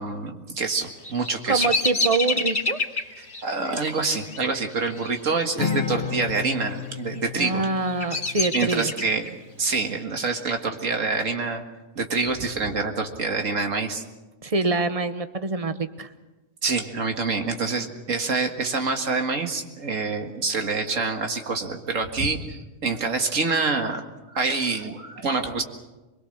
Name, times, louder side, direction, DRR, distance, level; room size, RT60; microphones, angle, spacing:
voice 1, 0.0-1.7 3.4-7.7 8.5-11.6 12.0-14.0 16.6-24.0 24.3-25.6, right 4 dB, 85° right, 4 dB, 2.2 m, -26 dB
Bird vocalization bird call bird song, 0.8-5.9 6.1-6.7 7.3-9.3, left 3 dB, 55° left, 2.5 m, -29 dB
voice 2, 1.5-2.8 7.4-8.9 14.4-16.1, right 3 dB, 30° right, 10 dB, 1.0 m, -25 dB
Acoustic guitar, 5.6-9.2, left 6 dB, 35° left, 1.5 m, -32 dB
24.0 x 22.0 x 6.6 m, 1.1 s
omnidirectional pair, 1.3 m